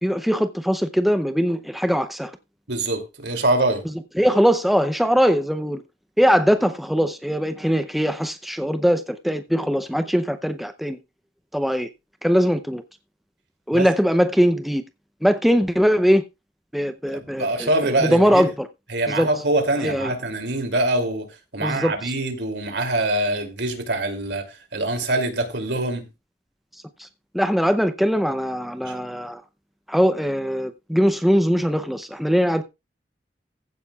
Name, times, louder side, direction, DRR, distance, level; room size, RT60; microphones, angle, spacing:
voice 1, 0.0-2.3 4.2-5.8 6.2-11.0 11.5-11.9 12.2-12.8 13.7-14.8 15.2-16.2 16.7-18.7 19.1-19.3 19.8-20.1 21.6-21.9 27.3-29.4 29.9-32.6, equal, ahead, 0.6 m, -21 dB
voice 2, 2.7-3.8 13.7-13.9 17.1-18.5 18.9-21.3 21.5-26.1 28.8-28.9, right 2 dB, 80° right, 2.8 m, -24 dB
15.0 x 10.0 x 2.4 m
head